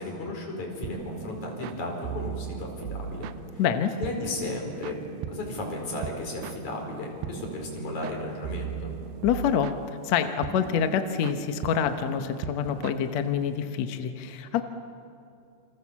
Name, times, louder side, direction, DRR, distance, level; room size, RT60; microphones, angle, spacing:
voice 1, 0.0-3.6 4.0-5.0 5.3-8.9, left 2 dB, 50° left, 1 dB, 6.0 m, -35 dB
sound 1, 0.8-13.6, right 9 dB, 80° right, 2.6 m, -39 dB
voice 2, 3.6-3.9 9.2-9.7 10.0-14.6, left 8 dB, 70° left, 7 dB, 1.7 m, -26 dB
29.0 x 27.0 x 7.3 m, 2.6 s
omnidirectional pair, 4.4 m